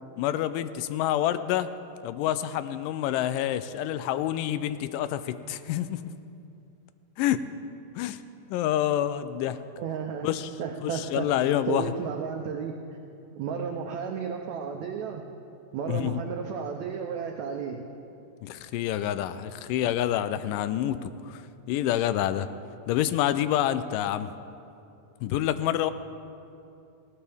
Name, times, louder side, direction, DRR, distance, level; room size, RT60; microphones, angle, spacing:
voice 1, 0.2-1.7 2.0-6.1 7.2-7.4 8.0-8.2 8.5-9.6 10.2-10.5 10.8-11.8 15.9-16.2 18.4-21.4 21.7-22.5 22.9-24.3 25.2-25.9, left 12 dB, 80° left, 13 dB, 2.0 m, -27 dB
voice 2, 9.8-10.3 10.6-11.2 11.7-12.7 13.3-15.2 15.7-17.8, right 7 dB, 85° right, 3 dB, 1.6 m, -33 dB
18.5 x 17.5 x 3.5 m, 2.7 s
omnidirectional pair, 4.2 m